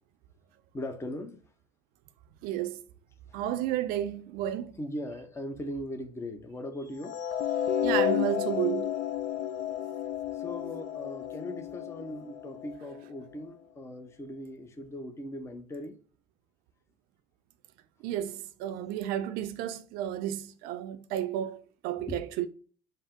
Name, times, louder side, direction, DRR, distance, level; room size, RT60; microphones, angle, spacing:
voice 1, 0.7-1.4 3.3-3.5 4.7-7.2 10.3-16.0 18.7-18.8 21.9-22.3, left 1 dB, 15° left, 0.6 m, -39 dB
voice 2, 2.4-2.8 3.3-4.7 7.8-8.9 18.0-22.5, right 12 dB, 70° right, 0.5 m, -32 dB
sound 1, 7.0-13.3, left 10 dB, 55° left, 0.5 m, -32 dB
5.4 x 2.0 x 3.6 m
supercardioid pair, 90°, 16 cm